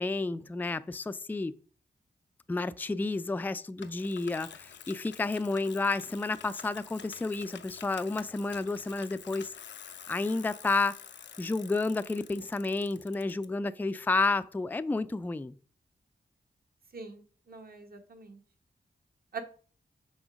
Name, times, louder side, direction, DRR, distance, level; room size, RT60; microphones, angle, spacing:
voice 1, 0.0-1.5 2.5-9.5 10.1-11.0 11.4-15.5, left 3 dB, 10° left, 0.3 m, -31 dB
Bicycle, 3.8-13.4, left 8 dB, 85° left, 0.6 m, -49 dB
voice 2, 16.9-18.4 19.3-19.4, right 5 dB, 55° right, 1.2 m, -43 dB
6.1 x 3.8 x 5.1 m
cardioid pair, 60°, 18 cm